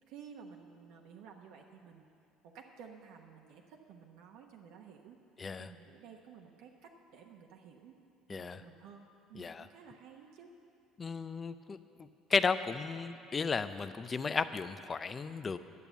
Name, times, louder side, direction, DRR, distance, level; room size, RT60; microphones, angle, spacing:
voice 1, 0.1-2.1 2.4-5.2 5.6-8.0 8.3-10.5, right 6 dB, 75° right, 1 dB, 0.9 m, -54 dB
voice 2, 8.3-8.6 9.4-9.7 11.0-15.6, left 5 dB, 20° left, 12 dB, 0.4 m, -34 dB
11.0 x 8.6 x 8.2 m, 2.6 s
cardioid pair, 150°, 0 cm